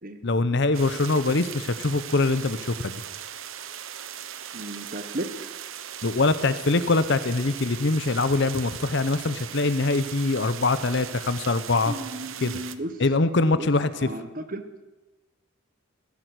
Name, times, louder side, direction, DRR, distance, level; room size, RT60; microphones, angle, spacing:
voice 1, 0.2-3.0 6.0-11.9 12.4-12.6 13.0-14.1, left 3 dB, 55° left, 13 dB, 0.7 m, -23 dB
sound 1, 0.7-12.8, right 9 dB, 70° right, 0.8 m, -39 dB
voice 2, 4.5-5.5 11.9-12.9 13.6-13.7 14.0-14.6, right 1 dB, 40° right, 9 dB, 1.2 m, -34 dB
15.5 x 10.5 x 8.1 m, 1.1 s
head